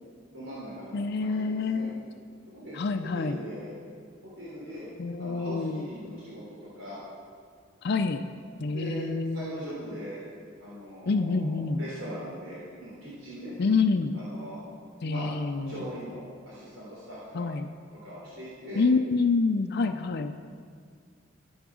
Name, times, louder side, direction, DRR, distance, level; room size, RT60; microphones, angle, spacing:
voice 1, 0.3-1.9 2.5-3.7 4.4-4.9 5.2-7.0 8.7-9.1 9.3-10.2 10.6-13.5 14.1-14.6 15.0-15.3 15.7-17.5 17.9-18.8, equal, 85° right, -8 dB, 3.5 m, -41 dB
voice 2, 0.9-2.1 2.7-3.4 5.0-5.9 7.8-8.2 8.6-9.6 11.1-11.8 13.6-14.1 15.0-15.8 17.3-17.7 18.8-20.4, left 4 dB, 55° left, 7 dB, 0.5 m, -27 dB
13.5 x 8.0 x 6.2 m, 2.1 s
head